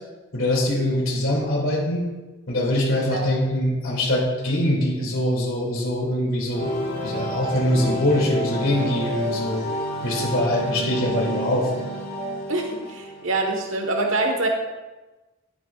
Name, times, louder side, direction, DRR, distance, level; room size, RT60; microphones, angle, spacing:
voice 1, 0.3-2.0 2.5-6.7 7.0-9.6 10.0-11.7, left 1 dB, 80° left, -4 dB, 2.7 m, -23 dB
sound 1, 6.5-13.4, equal, 50° left, 2.0 m, -29 dB
voice 2, 12.5-14.5, right 2 dB, 75° right, 3 dB, 1.4 m, -25 dB
11.5 x 9.6 x 2.4 m, 1.2 s
head